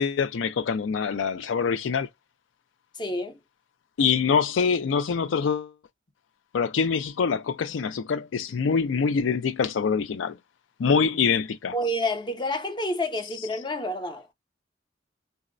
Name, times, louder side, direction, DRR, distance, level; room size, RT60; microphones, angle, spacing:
voice 1, 0.0-2.1 4.0-5.7 6.5-10.4 10.8-11.7, left 6 dB, 90° left, 0.4 m, -24 dB
voice 2, 2.9-3.4 11.7-14.3, left 1 dB, 25° left, 0.5 m, -29 dB
3.5 x 2.0 x 2.4 m
head